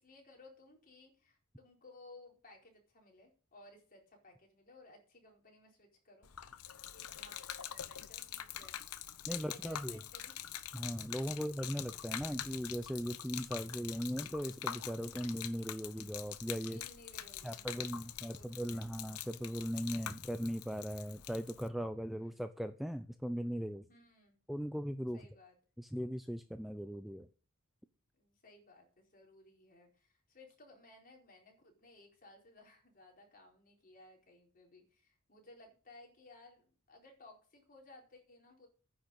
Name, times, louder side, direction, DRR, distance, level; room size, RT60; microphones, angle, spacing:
voice 1, 0.0-6.5 6.9-7.4 7.7-8.8 9.3-10.4 11.3-11.4 16.6-19.0 22.1-22.5 23.9-24.4 25.1-25.5 28.1-38.7, left 2 dB, 40° left, 1 dB, 4.4 m, -59 dB
Gurgling / Liquid, 6.2-21.7, left 11 dB, 80° left, 0.8 m, -45 dB
voice 2, 9.3-10.0 10.7-16.8 17.4-23.9 24.5-25.2 25.8-27.3, equal, ahead, 9 dB, 0.5 m, -39 dB
9.9 x 6.5 x 8.9 m, 0.38 s
head